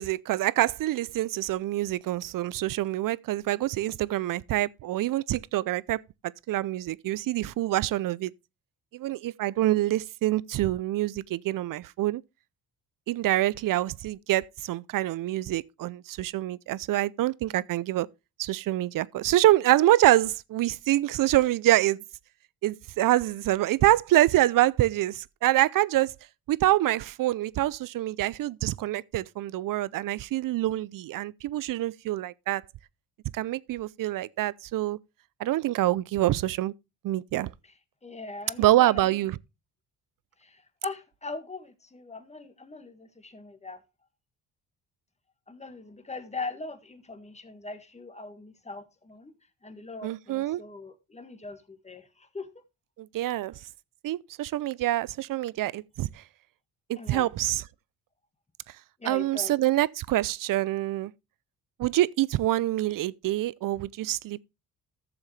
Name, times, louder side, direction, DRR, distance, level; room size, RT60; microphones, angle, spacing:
voice 1, 0.0-6.0 6.5-8.3 8.9-12.2 13.1-18.1 18.4-22.0 22.6-26.1 26.5-32.6 33.3-35.0 35.4-36.7 37.0-37.5 38.6-39.3 50.0-50.6 53.0-53.5 54.0-56.1 56.9-57.6 59.1-61.1 61.8-64.4, right 15 dB, 60° right, 0.5 m, -26 dB
voice 2, 38.0-39.2 40.4-43.8 45.5-49.3 49.6-52.5 57.0-57.3 59.0-59.5, left 3 dB, 15° left, 1.7 m, -40 dB
13.5 x 7.1 x 3.2 m
cardioid pair, 80°, 38 cm